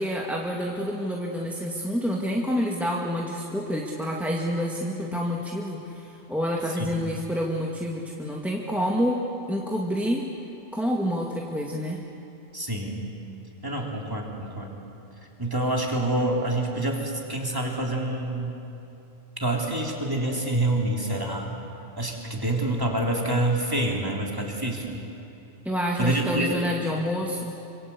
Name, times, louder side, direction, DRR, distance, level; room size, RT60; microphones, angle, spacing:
voice 1, 0.0-9.2 9.5-10.2 10.7-12.0 25.6-27.5, equal, ahead, -1 dB, 2.0 m, -28 dB
voice 2, 12.5-13.1 13.6-14.8 15.4-18.6 19.4-21.5 22.0-25.0 26.0-26.6, right 1 dB, 20° right, -1 dB, 3.5 m, -27 dB
27.0 x 26.0 x 8.5 m, 2.8 s
omnidirectional pair, 1.1 m